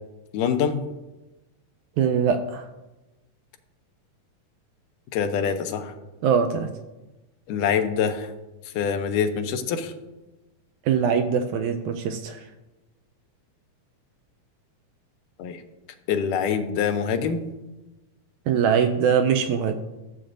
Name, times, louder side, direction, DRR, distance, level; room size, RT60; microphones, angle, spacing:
voice 1, 0.3-0.8 5.1-5.9 7.5-8.3 8.8-9.9 15.4-15.6 16.1-17.4, left 7 dB, 80° left, 8 dB, 2.2 m, -25 dB
voice 2, 2.0-2.7 6.2-6.7 10.8-12.5 18.5-19.7, right 7 dB, 80° right, 6 dB, 1.8 m, -22 dB
13.5 x 7.8 x 2.5 m, 1.1 s
omnidirectional pair, 3.7 m